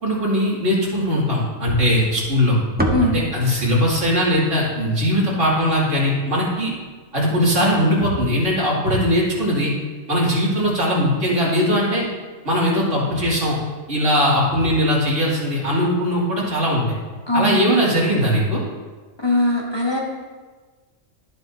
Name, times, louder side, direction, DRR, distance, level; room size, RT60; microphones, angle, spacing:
voice 1, 0.0-2.6 3.0-6.7 7.1-9.7 10.1-12.0 12.4-13.6 13.9-17.0 17.3-18.6, equal, 80° right, -6 dB, 3.1 m, -20 dB
sound 1, 1.7-6.0, right 2 dB, 10° right, 0.7 m, -29 dB
voice 2, 19.2-20.0, left 1 dB, 20° left, -3 dB, 1.3 m, -20 dB
12.0 x 10.5 x 2.8 m, 1.4 s
omnidirectional pair, 1.3 m